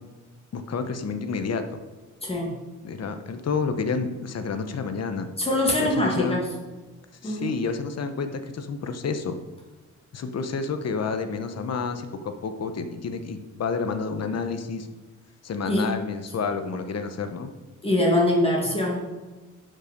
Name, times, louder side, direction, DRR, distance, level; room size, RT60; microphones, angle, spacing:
voice 1, 0.5-1.6 2.8-5.3 5.8-6.4 7.2-9.4 10.1-14.9 15.4-17.5, left 5 dB, 55° left, 8 dB, 1.0 m, -29 dB
voice 2, 2.2-2.5 5.4-6.5 7.2-7.5 15.7-16.0 17.8-19.0, left 1 dB, 20° left, -3 dB, 2.1 m, -23 dB
11.5 x 5.5 x 5.2 m, 1.2 s
wide cardioid pair, 140°, 31 cm